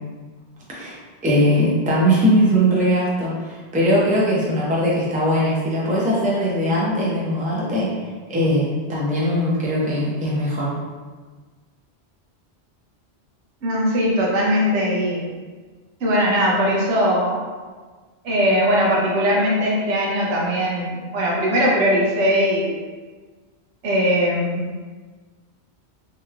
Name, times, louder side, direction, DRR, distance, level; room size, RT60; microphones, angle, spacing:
voice 1, 0.7-7.9 8.3-10.7, equal, 10° right, -6 dB, 0.4 m, -20 dB
voice 2, 13.6-15.3 16.0-17.4 18.2-22.7 23.8-24.7, equal, 90° right, -3 dB, 1.0 m, -20 dB
3.1 x 2.9 x 2.4 m, 1.4 s
omnidirectional pair, 1.2 m